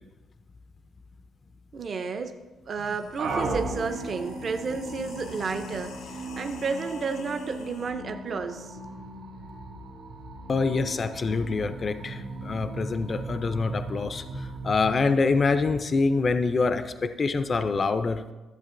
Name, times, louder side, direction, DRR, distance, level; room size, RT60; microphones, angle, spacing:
voice 1, 1.7-2.4 2.7-8.8, right 4 dB, 40° right, 7 dB, 0.5 m, -32 dB
sound 1, 2.2-2.3 2.6-7.9, left 4 dB, 85° left, 0.8 m, -46 dB
sound 2, 3.2-16.0, right 2 dB, 85° right, 1.6 m, -37 dB
voice 2, 10.5-18.2, left 4 dB, 35° left, 10 dB, 0.3 m, -25 dB
12.5 x 7.3 x 2.5 m, 1.2 s
cardioid pair, 135°, 0 cm